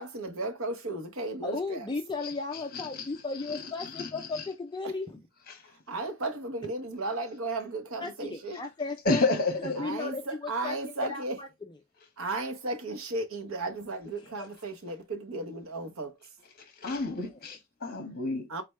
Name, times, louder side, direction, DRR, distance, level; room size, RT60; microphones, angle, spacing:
voice 1, 0.0-1.9 5.9-8.6 9.8-11.4 12.2-16.1 18.5-18.6, right 2 dB, 70° right, 0.9 m, -35 dB
voice 2, 1.2-5.2 8.0-9.2 9.6-11.5 14.2-14.5, left 3 dB, 20° left, 0.4 m, -35 dB
voice 3, 2.7-3.1 3.5-3.7 4.0-4.1 4.3-4.4 9.0-9.9 16.8-18.5, left 3 dB, 45° left, 1.2 m, -30 dB
4.2 x 3.2 x 3.1 m
head